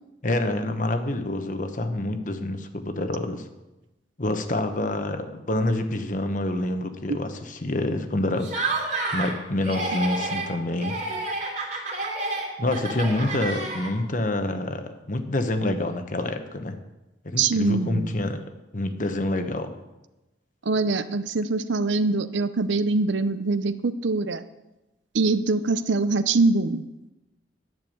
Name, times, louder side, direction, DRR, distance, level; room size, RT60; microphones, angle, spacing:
voice 1, 0.2-3.4 4.2-8.5 9.1-11.0 12.6-16.8 17.2-19.7, left 1 dB, 45° left, 7 dB, 1.1 m, -27 dB
Laughter, 8.4-9.4 9.6-10.5 10.8-14.1, right 2 dB, 40° right, 2.6 m, -29 dB
voice 2, 17.4-18.1 20.7-24.4 25.1-26.8, right 3 dB, 80° right, 13 dB, 0.7 m, -23 dB
11.0 x 7.1 x 8.7 m, 1.0 s
head